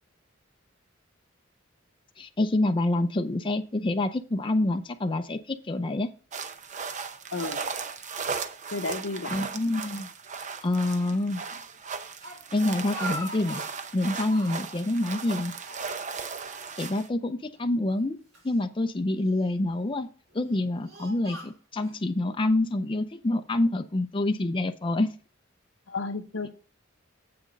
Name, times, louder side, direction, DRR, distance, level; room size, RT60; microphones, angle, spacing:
voice 1, 2.2-6.1 9.3-10.1 10.6-11.4 12.5-13.6 13.9-15.5 16.8-18.2 18.4-20.1 20.3-25.1, left 2 dB, 25° left, 6 dB, 0.5 m, -27 dB
sound 1, 6.3-17.1, right 5 dB, 40° right, 0.7 m, -36 dB
voice 2, 8.7-9.5 25.9-26.5, left 3 dB, 75° left, 8 dB, 0.9 m, -32 dB
Speech, 12.2-13.9 14.2-14.8 15.2-16.3 16.6-16.7 17.5-18.6 19.2-19.7 20.3-22.0, right 1 dB, 75° right, 4.5 m, -42 dB
7.8 x 6.1 x 5.2 m, 0.37 s
head